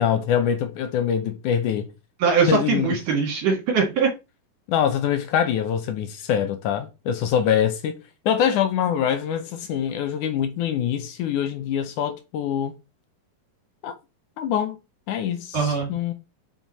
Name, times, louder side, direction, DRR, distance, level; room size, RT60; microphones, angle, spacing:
voice 1, 0.0-1.9 2.5-3.0 4.7-8.0 8.3-12.7 13.8-13.9 14.4-14.8 15.1-16.1, left 8 dB, 70° left, 2.1 m, -24 dB
voice 2, 2.2-4.1 15.5-15.9, right 5 dB, 65° right, 3.2 m, -21 dB
7.3 x 6.4 x 4.1 m
omnidirectional pair, 4.2 m